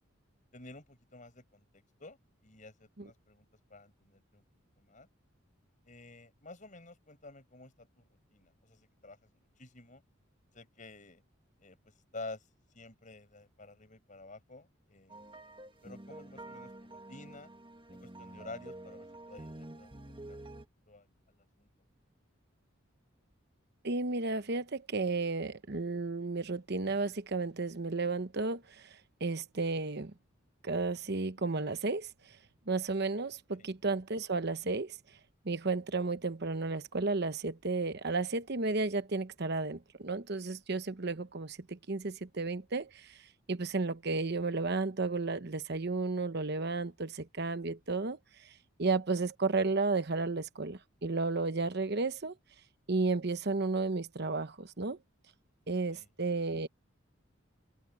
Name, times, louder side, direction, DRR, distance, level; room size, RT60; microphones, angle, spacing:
voice 1, 0.5-1.6 2.0-3.5 3.7-4.4 4.8-5.1 5.9-9.2 9.6-10.0 10.5-11.2 11.6-11.8 12.1-12.4 12.7-15.2 15.8-17.5 17.9-20.0 20.3-20.4 20.9-21.7 33.6-33.7 55.9-56.1, left 2 dB, 40° left, 5.6 m, -50 dB
sound 1, 15.1-20.7, right 1 dB, 25° right, 1.8 m, -48 dB
voice 2, 23.8-30.1 30.6-32.4 32.7-35.0 35.4-43.2 43.5-48.5 48.8-52.3 52.9-55.0 55.7-56.7, right 3 dB, 55° right, 1.0 m, -33 dB
open air
head